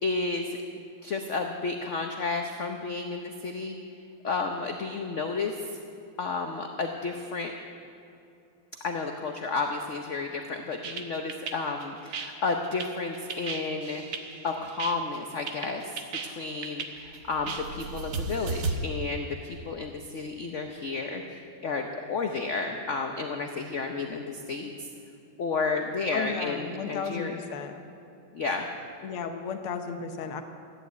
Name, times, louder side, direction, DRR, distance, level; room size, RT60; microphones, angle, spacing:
voice 1, 0.0-3.7 4.2-5.6 6.2-7.5 8.8-14.0 14.4-24.9 25.4-27.4 28.3-28.7, left 4 dB, 50° left, 4 dB, 0.9 m, -32 dB
sound 1, 10.8-18.7, right 4 dB, 55° right, 1.6 m, -35 dB
voice 2, 26.1-27.7 29.0-30.4, left 6 dB, 80° left, 6 dB, 1.9 m, -34 dB
14.5 x 10.5 x 9.2 m, 2.7 s
omnidirectional pair, 2.4 m